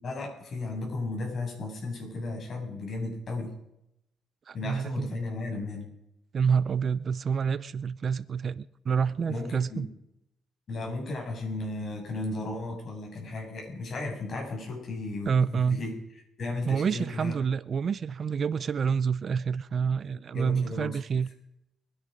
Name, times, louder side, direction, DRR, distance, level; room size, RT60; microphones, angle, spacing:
voice 1, 0.0-3.5 4.5-5.9 9.3-9.9 10.7-15.9 16.4-17.3 20.3-21.0, left 2 dB, 50° left, 7.4 m, -35 dB
voice 2, 4.5-5.1 6.3-9.9 15.3-15.8 16.6-21.3, right 6 dB, 50° right, 0.6 m, -28 dB
24.0 x 10.0 x 5.3 m
cardioid pair, 90°, 0 cm